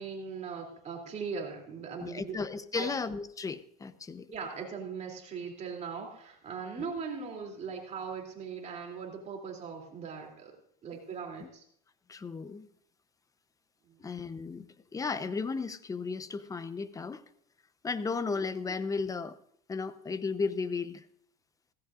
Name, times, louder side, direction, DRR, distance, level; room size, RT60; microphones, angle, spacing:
voice 1, 0.0-2.4 2.7-2.9 4.3-10.5 10.8-11.6 13.9-14.0, right 5 dB, 35° right, 2 dB, 3.0 m, -39 dB
voice 2, 2.0-4.3 11.4-11.5 12.1-12.7 14.0-14.7 14.9-17.2 17.8-19.4 19.7-21.0, left 4 dB, 15° left, 13 dB, 0.8 m, -34 dB
16.5 x 15.5 x 2.5 m, 0.67 s
supercardioid pair, 110°, 21 cm